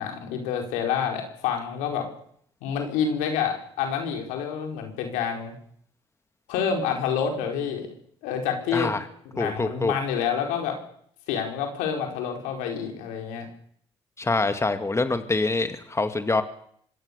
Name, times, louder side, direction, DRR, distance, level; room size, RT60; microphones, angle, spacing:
voice 1, 0.0-2.1 2.6-5.5 6.5-7.9 8.2-8.9 9.3-10.8 11.3-13.5, left 7 dB, 80° left, 3 dB, 4.7 m, -28 dB
voice 2, 8.7-9.0 9.4-9.9 14.2-16.4, left 3 dB, 20° left, 9 dB, 2.2 m, -25 dB
25.5 x 19.0 x 6.9 m, 0.65 s
hypercardioid pair, 60°, 13 cm